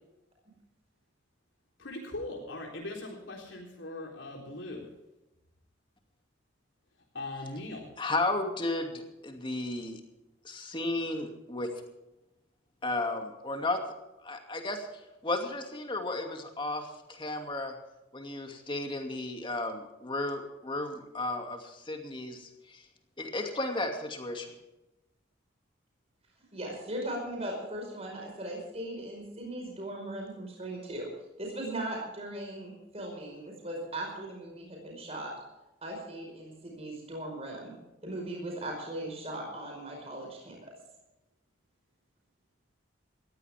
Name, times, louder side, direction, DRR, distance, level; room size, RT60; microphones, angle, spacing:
voice 1, 1.8-4.9 7.1-7.9, left 2 dB, 70° left, 0 dB, 3.8 m, -40 dB
voice 2, 8.0-10.0 10.4-11.7 12.8-13.8 14.2-14.9 15.2-17.7 18.1-22.8 23.2-24.5, left 2 dB, 25° left, 4 dB, 2.5 m, -34 dB
voice 3, 26.5-31.1 31.4-35.3 35.8-37.7 38.0-40.7, right 1 dB, 35° right, 0 dB, 5.1 m, -38 dB
19.5 x 15.5 x 3.6 m, 0.97 s
head